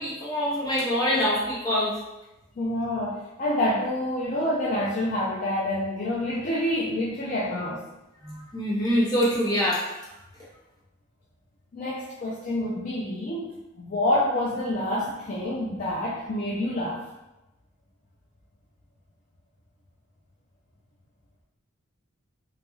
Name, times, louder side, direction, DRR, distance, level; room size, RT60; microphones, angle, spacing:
voice 1, 0.0-1.9 8.2-9.9, equal, 15° left, -8 dB, 0.7 m, -25 dB
voice 2, 2.6-7.8 11.7-17.0, left 1 dB, 40° left, -6 dB, 0.3 m, -27 dB
2.2 x 2.2 x 3.0 m, 0.97 s
head